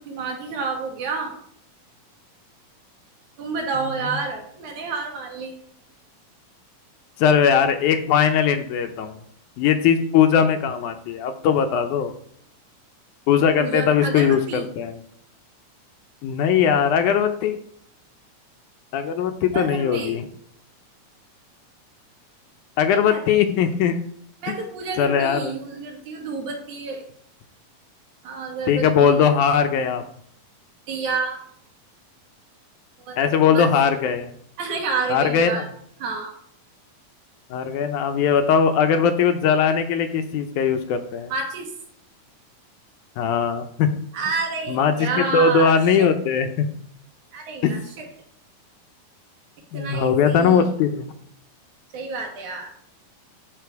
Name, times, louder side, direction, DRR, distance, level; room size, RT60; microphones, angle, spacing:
voice 1, 0.0-1.3 3.4-5.6 13.6-14.7 19.5-20.2 22.9-23.2 24.4-27.0 28.2-29.2 30.9-31.4 33.0-33.2 33.5-33.7 34.6-35.7 36.0-36.3 41.3-41.7 44.1-46.1 47.3-48.1 49.7-50.7 51.9-52.7, right 4 dB, 65° right, 2 dB, 2.7 m, -29 dB
voice 2, 7.2-9.2 9.6-12.1 13.3-15.0 16.2-17.6 18.9-20.2 22.8-24.0 25.0-25.5 28.7-30.0 33.2-34.3 35.1-35.6 37.5-41.3 43.2-43.9 44.7-46.7 47.6-47.7 49.7-51.1, left 7 dB, 75° left, 7 dB, 2.0 m, -20 dB
12.0 x 4.0 x 4.6 m, 0.67 s
omnidirectional pair, 3.8 m